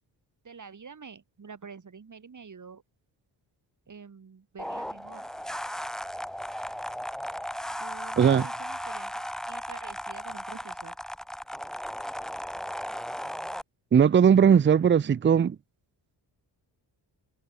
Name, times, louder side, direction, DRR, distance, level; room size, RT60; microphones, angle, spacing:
voice 1, 0.4-2.8 3.9-5.2 7.8-11.0, right 5 dB, 40° right, 6.5 m, -47 dB
sound 1, 4.6-13.6, equal, ahead, 1.0 m, -36 dB
voice 2, 8.2-8.5 13.9-15.6, right 7 dB, 25° right, 0.5 m, -19 dB
wide cardioid pair, 120°, 44 cm